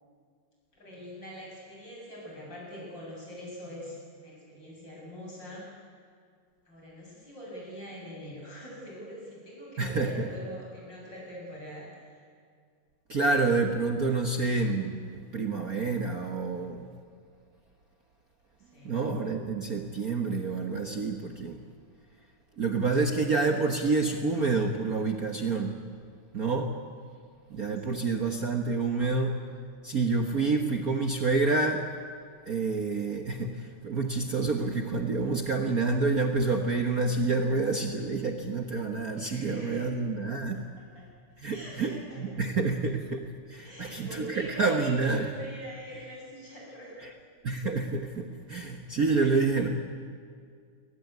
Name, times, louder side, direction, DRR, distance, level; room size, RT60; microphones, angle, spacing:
voice 1, 0.7-5.8 6.7-12.3 18.6-19.0 27.8-28.1 39.3-39.9 40.8-41.1 41.4-42.3 43.6-47.1 48.5-48.7 49.0-49.6, equal, 30° left, -4 dB, 8.7 m, -44 dB
voice 2, 9.8-10.3 13.1-16.8 18.8-21.6 22.6-25.8 26.3-26.7 27.5-29.3 29.8-31.9 32.5-40.6 41.4-45.3 47.4-49.7, right 3 dB, 65° right, 4 dB, 0.8 m, -28 dB
23.0 x 19.5 x 9.5 m, 2.1 s
omnidirectional pair, 3.7 m